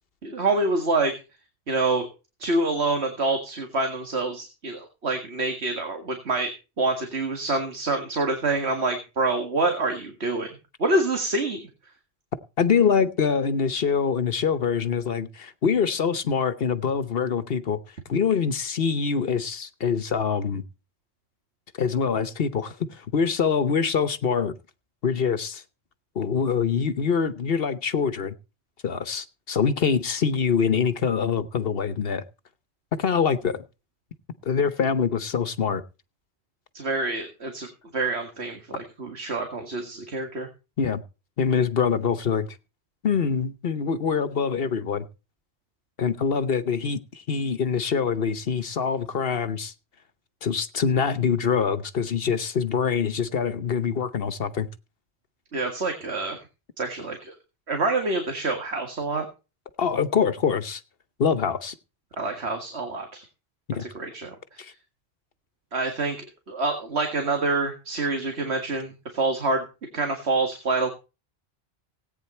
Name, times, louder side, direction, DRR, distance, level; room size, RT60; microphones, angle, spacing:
voice 1, 0.2-1.1 1.7-2.1 2.4-6.5 6.8-10.5 10.8-11.6 36.7-40.5 55.5-56.4 56.8-57.3 57.7-59.3 62.2-63.2 63.8-64.6 65.7-69.6 69.9-70.9, right 2 dB, 90° right, 2.2 m, -26 dB
voice 2, 12.6-17.8 18.1-20.6 21.8-24.5 25.0-25.6 26.1-28.3 28.8-32.2 32.9-33.6 34.4-35.8 40.8-41.0 41.4-42.5 43.0-45.0 46.0-49.7 50.4-54.7 59.8-60.8 61.2-61.7 63.7-63.8 64.6-64.7, left 6 dB, 65° left, 1.1 m, -24 dB
17.5 x 9.2 x 4.3 m
omnidirectional pair, 1.1 m